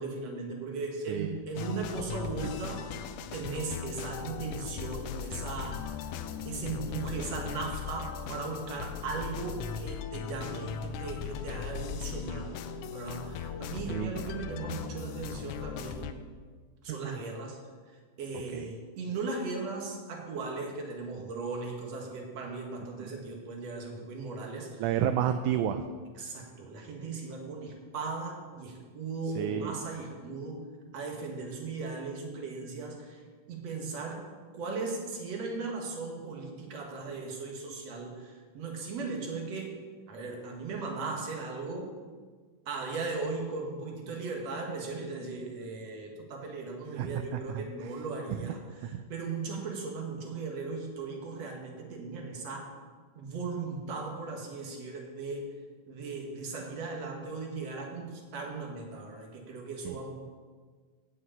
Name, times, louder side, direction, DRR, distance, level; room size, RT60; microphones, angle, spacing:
voice 1, 0.0-2.9 3.3-6.0 6.5-12.5 12.9-16.2 16.8-17.6 18.2-24.8 26.2-30.6 30.9-33.2 33.5-34.2 34.5-39.8 40.1-41.9 42.7-52.7 53.2-55.5 55.9-60.1, right 4 dB, 60° right, 1 dB, 2.7 m, -37 dB
sound 1, 1.6-16.1, left 8 dB, 85° left, 2.1 m, -38 dB
voice 2, 16.9-17.2 18.5-18.7 23.0-23.1 24.8-25.9 29.4-29.8 47.0-47.9 48.3-48.4 48.8-49.0 59.9-60.0, right 10 dB, 80° right, 8 dB, 1.9 m, -31 dB
8.5 x 7.8 x 8.6 m, 1.5 s
omnidirectional pair, 3.6 m